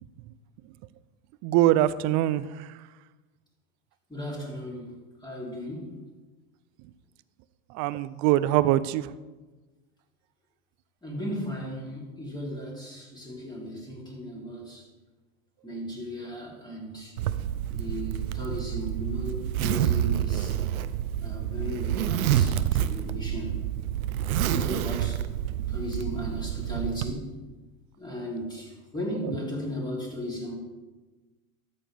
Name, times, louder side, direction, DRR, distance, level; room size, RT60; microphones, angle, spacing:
voice 1, 1.4-2.7 7.7-9.1, right 14 dB, 45° right, 15 dB, 0.5 m, -23 dB
voice 2, 4.1-6.0 11.0-14.9 15.6-17.1 17.7-20.6 21.2-23.6 24.5-25.2 25.7-27.4 28.0-30.5, equal, 10° left, -3 dB, 3.2 m, -36 dB
Zipper (clothing), 17.2-27.1, right 11 dB, 85° right, 0.6 m, -28 dB
13.5 x 7.1 x 3.4 m, 1.2 s
hypercardioid pair, 95°, 42 cm